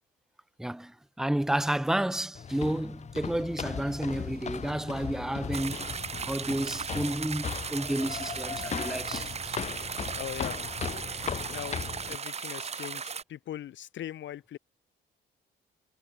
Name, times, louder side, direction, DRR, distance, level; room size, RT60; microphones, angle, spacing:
voice 1, 0.6-5.9 6.3-9.6 11.1-11.3, right 1 dB, ahead, 0.6 m, -31 dB
sound 1, 2.3-12.2, left 7 dB, 35° left, 0.7 m, -38 dB
Car, 3.9-12.1, right 7 dB, 50° right, 4.9 m, -51 dB
sound 2, 5.5-13.2, right 6 dB, 35° right, 0.9 m, -37 dB
voice 2, 10.2-10.6 11.5-14.6, left 11 dB, 70° left, 1.6 m, -40 dB
cardioid pair, 90°, 20 cm